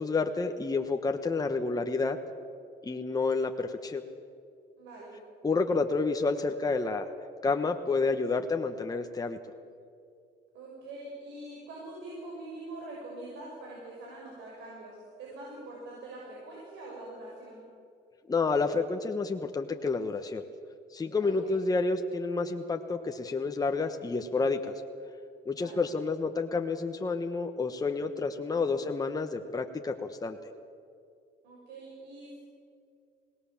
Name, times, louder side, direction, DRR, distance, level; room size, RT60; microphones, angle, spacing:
voice 1, 0.0-2.2 2.8-4.0 5.4-7.1 7.4-9.4 18.3-20.4 20.9-24.6 25.4-30.4, left 4 dB, 20° left, 5 dB, 1.3 m, -29 dB
voice 2, 4.8-5.1 10.5-17.6 21.2-21.6 25.5-25.9 28.3-28.7 31.4-32.4, right 2 dB, 85° right, -3 dB, 6.6 m, -44 dB
25.5 x 19.5 x 7.3 m, 2.4 s
cardioid pair, 95°, 18 cm